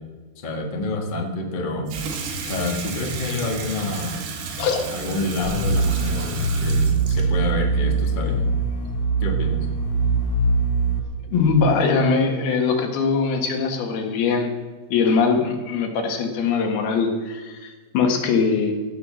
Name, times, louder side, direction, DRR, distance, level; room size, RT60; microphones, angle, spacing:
voice 1, 0.4-1.9 2.4-4.2 4.9-8.5 9.2-9.7, left 2 dB, 65° left, 1 dB, 0.4 m, -28 dB
Water tap faucet / Sink (filling or washing), 1.9-8.9, right 5 dB, 90° right, 3.6 m, -32 dB
sound 1, 5.4-11.0, right 3 dB, 50° left, 1.5 m, -22 dB
voice 2, 11.3-14.5 14.9-18.8, left 5 dB, 80° left, 3 dB, 3.6 m, -21 dB
16.5 x 8.9 x 6.4 m, 1.4 s
omnidirectional pair, 4.3 m